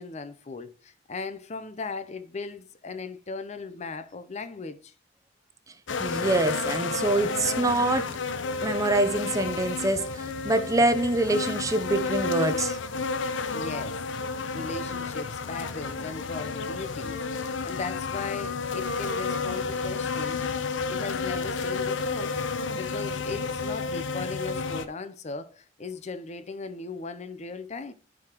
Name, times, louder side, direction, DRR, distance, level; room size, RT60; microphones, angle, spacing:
voice 1, 0.0-4.9 13.5-14.0 14.5-20.5 20.9-22.4 22.8-27.9, left 4 dB, 35° left, 0.6 m, -37 dB
sound 1, 5.9-24.9, left 4 dB, 80° left, 0.7 m, -31 dB
voice 2, 6.0-8.1 8.6-12.8, right 2 dB, 20° right, 0.6 m, -25 dB
13.0 x 4.9 x 3.0 m
head